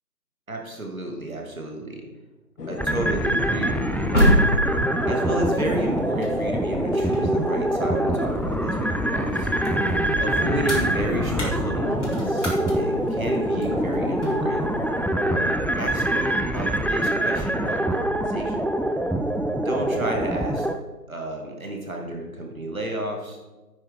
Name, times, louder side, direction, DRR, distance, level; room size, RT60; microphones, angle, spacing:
voice 1, 0.5-2.1 2.7-4.1 5.1-9.5 10.2-14.7 15.3-18.7 19.6-20.7 21.1-23.4, right 1 dB, 55° right, 1 dB, 2.3 m, -31 dB
sound 1, 2.6-15.4, left 4 dB, 70° left, 0.9 m, -34 dB
sound 2, 2.8-20.8, right 1 dB, 5° left, 0.4 m, -25 dB
sound 3, 3.6-8.7 9.1-14.6, equal, 45° left, 2.4 m, -28 dB
9.8 x 9.7 x 3.6 m, 1.2 s
figure-of-eight pair, 175°, 49 cm